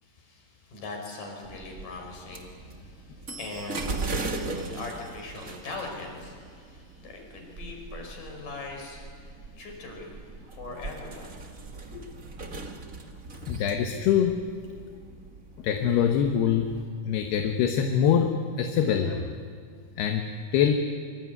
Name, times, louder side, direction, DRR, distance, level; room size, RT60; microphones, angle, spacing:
voice 1, 0.0-11.4, left 3 dB, 55° left, 2 dB, 6.7 m, -41 dB
sound 1, 1.4-16.8, right 3 dB, 60° right, 0.8 m, -39 dB
voice 2, 13.5-14.4 15.6-16.7 17.1-19.3 20.0-20.7, left 8 dB, 80° left, 5 dB, 3.3 m, -24 dB
25.0 x 25.0 x 9.6 m, 2.1 s
omnidirectional pair, 4.7 m